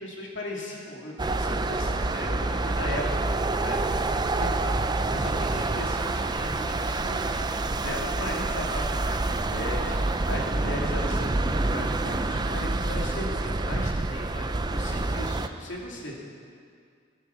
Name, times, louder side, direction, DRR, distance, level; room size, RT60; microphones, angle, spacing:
voice 1, 0.0-3.1 3.6-3.8 4.1-16.1, left 1 dB, 70° left, -2 dB, 2.7 m, -37 dB
sound 1, 1.2-15.5, right 2 dB, 20° right, 0.5 m, -27 dB
15.0 x 10.5 x 7.1 m, 2.2 s
head